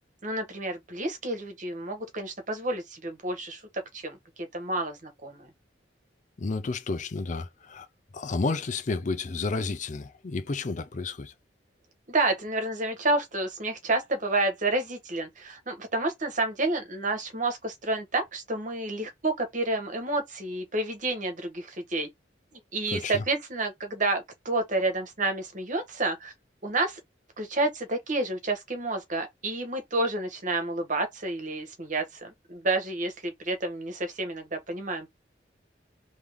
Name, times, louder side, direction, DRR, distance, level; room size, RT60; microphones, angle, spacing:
voice 1, 0.2-3.6 3.9-5.5 12.1-22.1 22.5-26.3 26.6-27.0 27.4-35.1, right 2 dB, 45° right, 1.3 m, -30 dB
voice 2, 6.4-7.9 8.1-11.3 22.9-23.2, left 3 dB, 45° left, 0.5 m, -31 dB
3.6 x 3.2 x 3.5 m
head